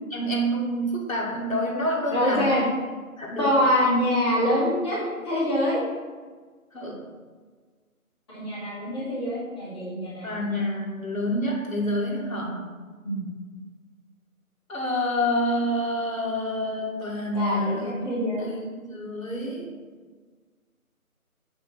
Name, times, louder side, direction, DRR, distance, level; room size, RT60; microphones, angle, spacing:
voice 1, 0.1-2.5 3.2-3.6 6.7-7.0 10.2-12.6 14.7-18.1 18.4-19.7, equal, 65° left, -2 dB, 2.1 m, -28 dB
voice 2, 2.1-2.6 3.4-5.0 5.2-5.8 8.3-10.4 13.0-13.3 17.3-18.5, equal, 20° left, -11 dB, 1.9 m, -25 dB
7.5 x 3.7 x 5.9 m, 1.5 s
figure-of-eight pair, 170°, 44 cm